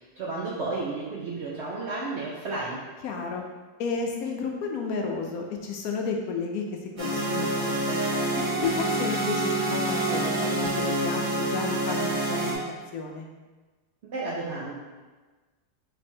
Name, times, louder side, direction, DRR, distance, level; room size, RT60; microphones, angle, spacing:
voice 1, 0.0-2.8 14.0-14.7, right 3 dB, 65° right, -5 dB, 0.7 m, -32 dB
voice 2, 3.0-3.4 3.8-6.6 7.0-7.9 8.3-12.5 12.9-13.3, left 4 dB, 70° left, 1 dB, 1.0 m, -32 dB
sound 1, 7.0-12.5, right 1 dB, 40° right, 1.2 m, -27 dB
3.3 x 3.1 x 4.3 m, 1.3 s
omnidirectional pair, 1.7 m